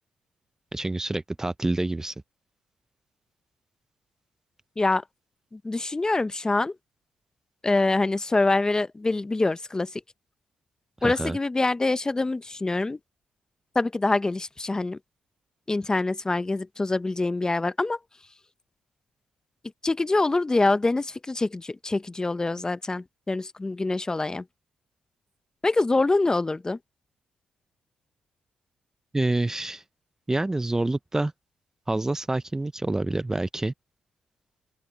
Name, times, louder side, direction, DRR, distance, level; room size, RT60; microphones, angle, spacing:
voice 1, 0.7-2.1 11.0-11.4 29.1-29.8 30.3-31.3 31.9-33.7, right 2 dB, 15° right, 0.6 m, -27 dB
voice 2, 5.5-6.7 7.6-9.9 11.0-13.0 13.7-15.0 15.7-18.0 19.8-24.4 25.6-26.8, left 2 dB, 25° left, 0.7 m, -25 dB
open air
cardioid pair, 65°, 3 cm